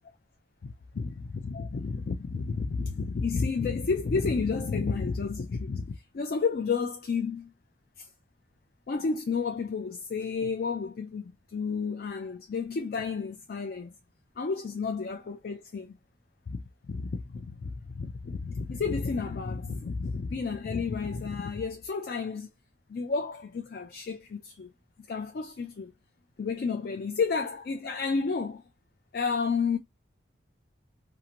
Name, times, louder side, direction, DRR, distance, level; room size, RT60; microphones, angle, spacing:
voice 1, 0.6-7.5 8.0-8.1 8.9-13.9 14.4-15.9 16.5-22.5 22.9-24.7 25.1-25.9 26.4-28.6 29.1-29.8, left 5 dB, 50° left, 0.3 m, -31 dB
2.7 x 2.5 x 2.8 m
head